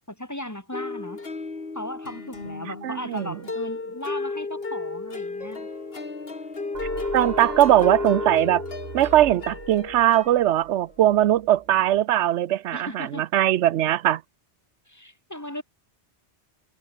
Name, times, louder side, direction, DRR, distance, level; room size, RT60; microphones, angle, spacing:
voice 1, 0.1-1.2 1.7-5.7 12.7-13.2 14.9-15.6, left 1 dB, 15° left, 2.2 m, -36 dB
sound 1, 0.7-10.8, left 3 dB, 55° left, 2.6 m, -33 dB
voice 2, 2.8-3.3 7.1-8.6 8.9-14.2, right 12 dB, 90° right, 0.9 m, -20 dB
Piano, 5.4-8.4, left 1 dB, 30° left, 7.0 m, -53 dB
sound 2, 6.7-12.0, right 5 dB, 55° right, 1.7 m, -39 dB
omnidirectional pair, 1.2 m